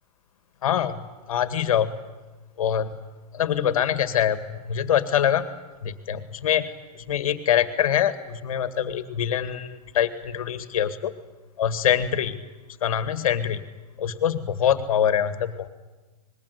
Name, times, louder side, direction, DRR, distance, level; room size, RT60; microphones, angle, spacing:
voice 1, 0.6-1.9 2.6-2.9 3.3-5.5 5.8-6.7 7.1-11.1 11.6-12.4 12.8-13.6 14.0-15.7, left 9 dB, 60° left, 11 dB, 2.0 m, -24 dB
25.5 x 21.0 x 8.2 m, 1.2 s
hypercardioid pair, 170°, 20 cm